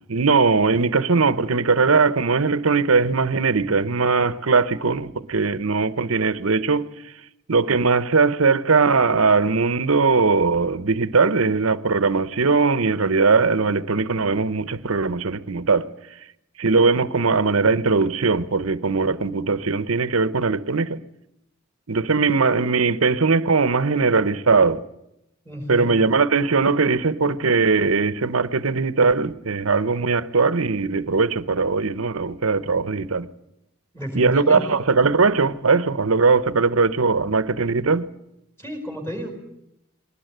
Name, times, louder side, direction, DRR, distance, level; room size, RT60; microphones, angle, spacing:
voice 1, 0.0-7.1 7.5-15.9 16.6-21.0 21.9-24.8 25.7-33.3 34.1-38.1, right 4 dB, 75° right, 0.9 m, -20 dB
voice 2, 25.4-26.0 33.9-34.8 38.6-39.3, equal, 10° left, 5.0 m, -31 dB
21.0 x 19.0 x 9.2 m
head